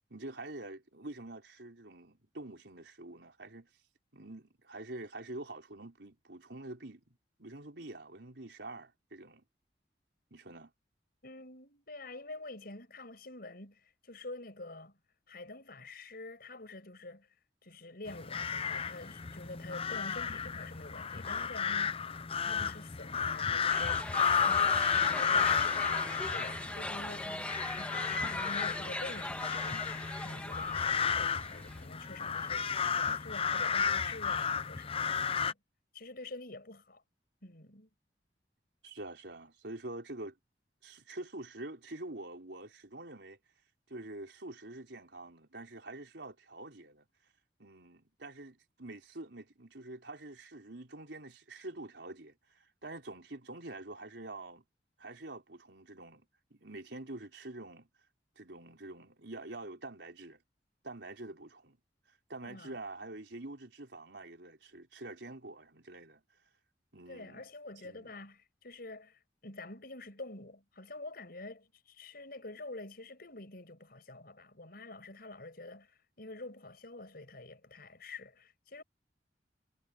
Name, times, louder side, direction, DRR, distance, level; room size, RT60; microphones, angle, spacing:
voice 1, 0.0-3.7 4.1-9.4 10.3-10.7 38.8-40.4 40.8-43.4 43.9-47.1 47.6-54.6 55.0-56.3 56.5-57.9 58.4-60.4 60.8-61.8 62.1-66.2 66.9-67.4 67.8-68.1, right 2 dB, 75° right, 4.2 m, -46 dB
voice 2, 11.2-15.0 15.3-17.3 17.6-22.1 22.4-24.0 24.4-27.5 27.8-35.6 35.9-37.0 37.4-37.9 62.4-62.8 67.1-78.8, left 2 dB, 60° left, 6.2 m, -47 dB
sound 1, 18.1-35.5, left 6 dB, 35° left, 0.7 m, -32 dB
sound 2, 23.7-31.8, left 1 dB, 5° left, 1.6 m, -40 dB
head